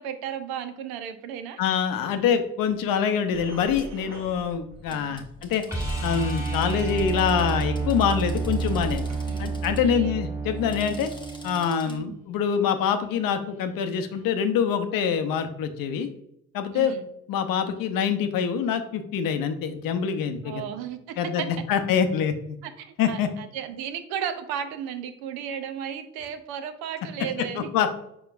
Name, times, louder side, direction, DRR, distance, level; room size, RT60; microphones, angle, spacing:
voice 1, 0.0-1.6 4.9-5.2 9.3-9.5 9.8-10.1 11.9-12.2 16.7-17.0 20.5-21.2 22.6-27.7, right 8 dB, 70° right, 9 dB, 0.6 m, -34 dB
voice 2, 1.6-5.7 6.0-9.0 9.4-11.1 11.4-16.1 16.5-16.9 17.3-20.6 21.2-22.6 23.0-23.3 27.5-27.9, left 7 dB, 60° left, 8 dB, 0.6 m, -25 dB
sound 1, 3.3-9.8, right 1 dB, 45° right, 1.2 m, -44 dB
Drill, 3.8-3.9 4.9-9.8 10.5-12.0, left 1 dB, 10° left, 0.8 m, -49 dB
sound 2, 5.7-11.7 14.2-14.3, right 4 dB, 10° right, 1.7 m, -29 dB
4.9 x 4.4 x 2.4 m, 0.77 s
hypercardioid pair, 40°, 39 cm